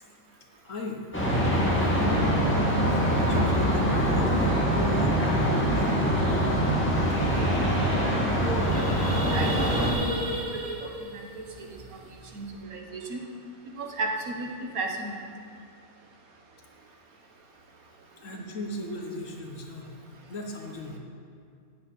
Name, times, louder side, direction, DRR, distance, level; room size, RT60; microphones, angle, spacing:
voice 1, 0.6-1.0 1.7-2.2 2.7-5.9 6.1-6.6 7.0-7.8 18.2-19.9 20.3-21.0, left 1 dB, 60° left, 2 dB, 1.5 m, -37 dB
sound 1, 1.1-9.9, equal, 10° left, 2.2 m, -24 dB
sound 2, 7.3-7.4 7.6-7.9 8.2-12.5, right 1 dB, 25° right, 1.0 m, -35 dB
voice 2, 8.4-9.5 9.8-10.0 10.5-10.9 11.6-11.7 12.3-13.2 13.8-14.5 14.7-15.1, right 3 dB, 70° right, 2 dB, 1.8 m, -34 dB
9.5 x 7.7 x 8.2 m, 2.4 s
omnidirectional pair, 1.6 m